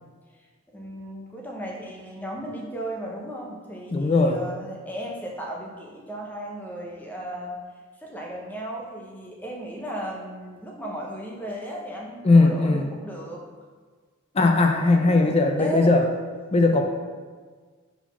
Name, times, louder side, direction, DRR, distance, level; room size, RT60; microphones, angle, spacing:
voice 1, 0.7-7.6 8.0-13.4 15.0-15.3 15.6-16.0, right 1 dB, 10° left, -1 dB, 0.8 m, -35 dB
voice 2, 3.9-4.4 12.2-12.9 14.3-16.1 16.5-16.8, left 3 dB, 30° left, 4 dB, 0.4 m, -19 dB
4.7 x 3.9 x 5.5 m, 1.5 s
head